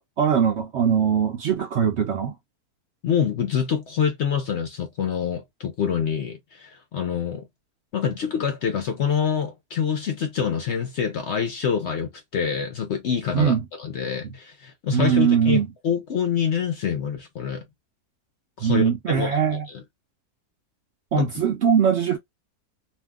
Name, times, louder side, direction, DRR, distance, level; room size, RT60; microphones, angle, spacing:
voice 1, 0.0-2.3 13.3-13.6 14.9-15.7 18.6-19.7 21.1-22.2, right 7 dB, 65° right, 0.7 m, -21 dB
voice 2, 3.0-7.5 7.9-17.6 18.6-19.3 19.7-19.8 21.2-21.3, left 7 dB, 65° left, 0.7 m, -26 dB
2.6 x 2.1 x 3.5 m
omnidirectional pair, 1.6 m